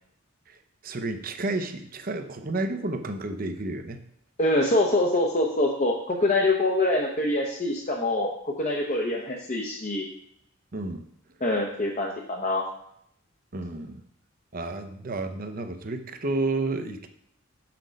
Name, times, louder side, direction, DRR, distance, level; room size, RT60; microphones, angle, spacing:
voice 1, 0.8-4.0 10.7-11.0 13.5-14.0 14.5-17.1, right 2 dB, 45° right, 7 dB, 0.7 m, -31 dB
voice 2, 4.4-10.1 11.4-12.6, left 2 dB, 35° left, -1 dB, 0.8 m, -25 dB
6.3 x 5.9 x 5.2 m, 0.73 s
head